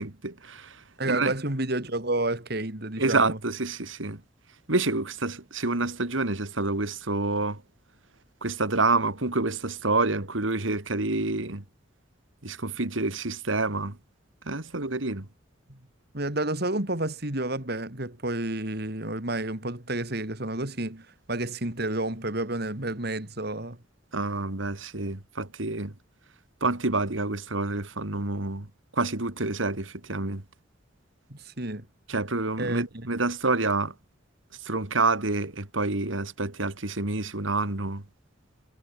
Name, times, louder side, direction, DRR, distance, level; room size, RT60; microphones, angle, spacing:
voice 1, 0.0-1.3 3.0-4.2 4.7-7.6 8.4-11.6 12.4-14.0 14.5-15.3 24.1-25.9 26.6-28.7 28.9-30.4 32.1-33.9 34.6-38.0, right 3 dB, 85° right, 2.5 m, -28 dB
voice 2, 1.0-3.4 15.7-15.8 16.1-23.8 31.3-31.9 32.6-33.1, right 2 dB, 55° right, 3.4 m, -30 dB
head